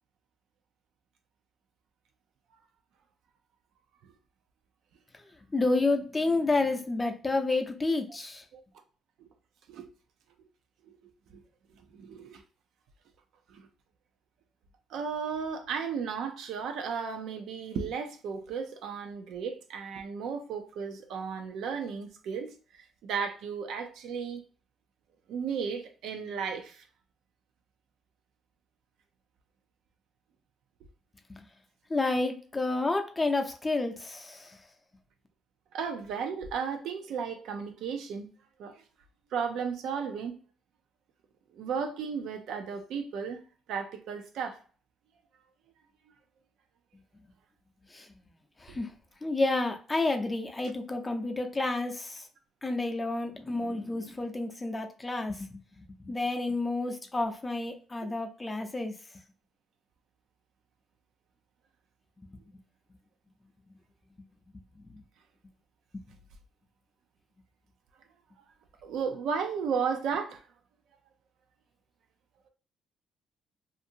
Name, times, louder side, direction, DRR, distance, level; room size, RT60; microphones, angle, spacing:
voice 1, 5.5-8.4 31.3-31.4 31.9-34.6 47.9-48.1 48.6-48.9 49.2-52.3 52.6-58.9 64.8-65.0, left 2 dB, 20° left, 0.5 m, -30 dB
voice 2, 11.8-12.4 13.5-13.7 14.9-24.4 25.3-26.8 35.7-38.3 38.6-38.8 39.3-40.3 41.5-43.4 43.7-44.6 48.7-48.8 58.0-58.1 68.8-70.4, right 6 dB, 80° right, 0.5 m, -34 dB
2.5 x 2.5 x 2.7 m
cardioid pair, 90°, 0 cm